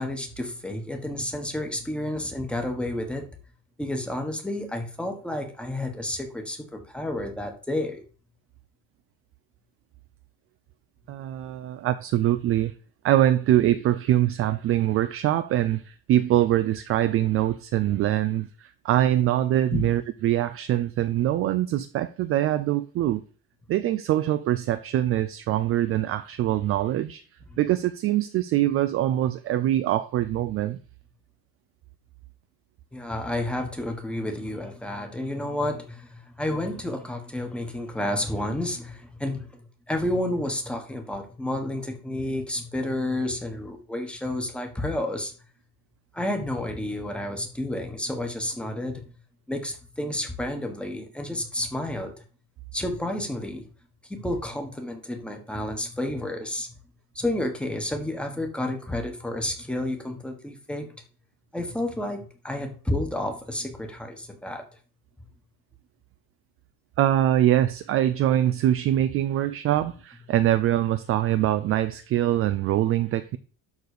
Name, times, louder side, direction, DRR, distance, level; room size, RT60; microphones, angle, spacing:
voice 1, 0.0-3.2 3.8-8.0 19.7-19.8 32.9-45.3 46.1-49.0 49.5-52.2 52.7-53.7 54.1-56.7 57.1-60.9 61.5-64.6, left 1 dB, 5° left, 1.3 m, -30 dB
voice 2, 11.1-12.7 13.0-23.2 23.7-27.2 27.6-30.8 67.0-73.4, right 12 dB, 35° right, 0.4 m, -23 dB
12.0 x 4.1 x 6.6 m
cardioid pair, 175°, 39 cm